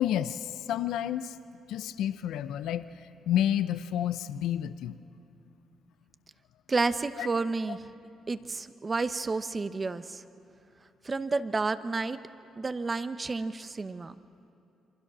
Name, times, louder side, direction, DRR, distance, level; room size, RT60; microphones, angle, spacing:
voice 1, 0.0-1.4 1.7-5.0 7.2-7.3, left 11 dB, 85° left, 12 dB, 0.6 m, -30 dB
voice 2, 6.7-7.8 8.3-10.2 11.0-12.2 12.6-14.1, right 3 dB, 30° right, 12 dB, 0.8 m, -30 dB
27.5 x 24.5 x 6.2 m, 2.7 s
cardioid pair, 90°, 0 cm